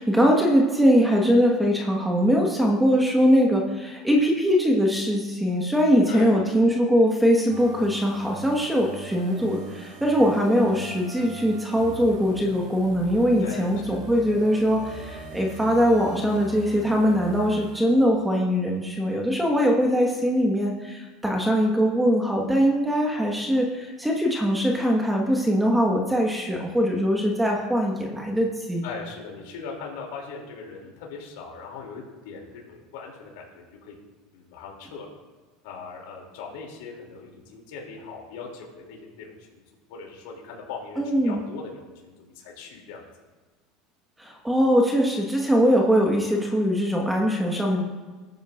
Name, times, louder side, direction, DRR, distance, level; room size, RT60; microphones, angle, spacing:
voice 1, 0.0-28.8 41.0-41.4 44.2-47.8, equal, 5° right, 0 dB, 1.5 m, -22 dB
voice 2, 6.1-6.5 13.4-14.1 28.8-33.9 34.3-35.1 35.6-39.6 39.9-43.1, left 4 dB, 80° left, -1 dB, 2.8 m, -40 dB
sound 1, 7.5-18.3, right 3 dB, 65° right, 2.9 m, -42 dB
19.0 x 9.5 x 2.5 m, 1.3 s
supercardioid pair, 125°, 0 cm